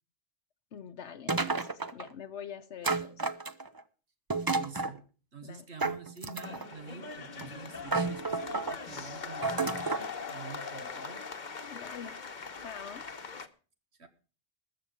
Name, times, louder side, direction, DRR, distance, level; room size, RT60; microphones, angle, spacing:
voice 1, 0.7-3.2 5.4-5.7 11.7-12.2 12.6-13.0, left 7 dB, 75° left, 8 dB, 1.1 m, -45 dB
sound 1, 1.3-2.1 2.8-3.8 4.3-5.0 5.8-6.7 7.4-7.5 7.9-8.8 9.4-10.1, right 3 dB, 25° right, 0.6 m, -31 dB
voice 2, 4.5-5.0 5.3-11.2 14.0-14.1, right 5 dB, 65° right, 7 dB, 1.7 m, -47 dB
sound 2, 6.4-13.5, left 5 dB, 45° left, 1.1 m, -41 dB
20.5 x 7.0 x 5.0 m, 0.37 s
omnidirectional pair, 1.2 m